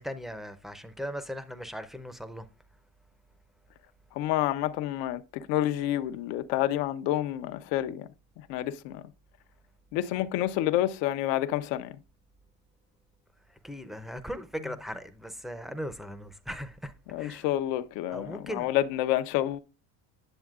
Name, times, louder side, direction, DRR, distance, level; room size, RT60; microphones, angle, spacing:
voice 1, 0.0-2.5 13.5-17.5 18.1-18.7, equal, ahead, 0.5 m, -38 dB
voice 2, 4.1-8.1 8.5-9.0 9.9-12.0 17.1-19.6, left 13 dB, 80° left, 0.8 m, -29 dB
9.1 x 7.1 x 2.4 m
cardioid pair, 130°, 42 cm